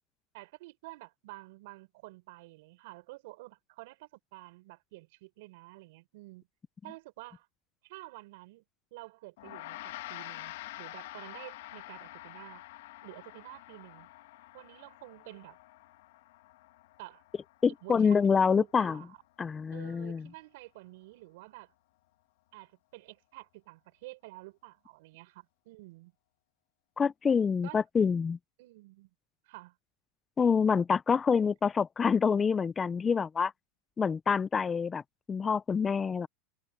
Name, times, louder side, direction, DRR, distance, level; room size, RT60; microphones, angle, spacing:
voice 1, 0.3-6.5 6.8-7.5 7.8-8.6 8.9-12.6 13.0-14.1 14.5-15.6 17.0-17.2 17.8-19.1 19.7-21.7 22.5-26.1 27.6-27.8 28.6-29.1 29.5-29.8, right 21 dB, 65° right, 6.3 m, -50 dB
Gong, 9.4-18.9, left 17 dB, 75° left, 1.9 m, -47 dB
voice 2, 17.6-19.0 19.4-20.3 27.0-28.4 30.4-33.5 34.0-35.0 35.3-36.3, left 6 dB, 20° left, 0.4 m, -26 dB
supercardioid pair, 145°, 0 cm